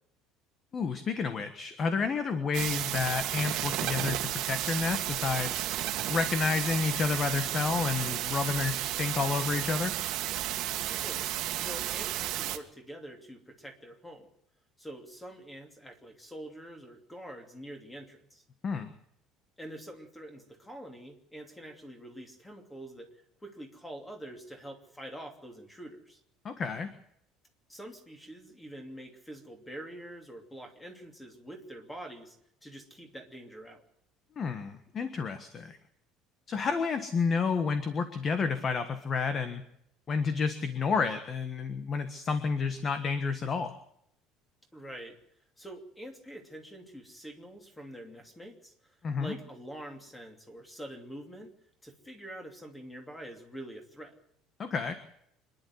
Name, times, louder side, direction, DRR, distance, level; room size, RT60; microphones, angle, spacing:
voice 1, 0.7-5.6 6.1-9.9 18.6-18.9 26.4-26.9 34.4-35.8 36.5-39.6 40.1-43.7 49.0-49.4 54.6-54.9, left 5 dB, 25° left, 9 dB, 1.4 m, -30 dB
sound 1, 2.5-12.6, right 13 dB, 50° right, 1.9 m, -33 dB
voice 2, 10.8-11.3 11.6-14.3 14.8-18.4 19.6-23.1 23.4-26.2 27.7-33.9 44.7-45.2 45.6-51.6 51.8-54.1, right 1 dB, 5° left, 5 dB, 2.9 m, -45 dB
26.0 x 11.0 x 9.6 m, 0.72 s
cardioid pair, 175°, 0 cm